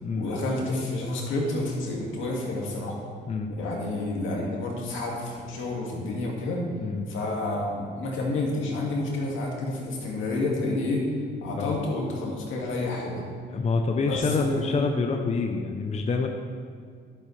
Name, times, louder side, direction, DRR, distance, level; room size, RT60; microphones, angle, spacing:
voice 1, 0.1-3.0 3.6-6.6 7.1-11.0 11.4-13.2 14.0-14.9, left 2 dB, 80° left, -2 dB, 2.1 m, -29 dB
voice 2, 13.5-16.3, left 4 dB, 35° left, 4 dB, 0.7 m, -27 dB
11.5 x 7.5 x 3.3 m, 2.2 s
cardioid pair, 90°, 20 cm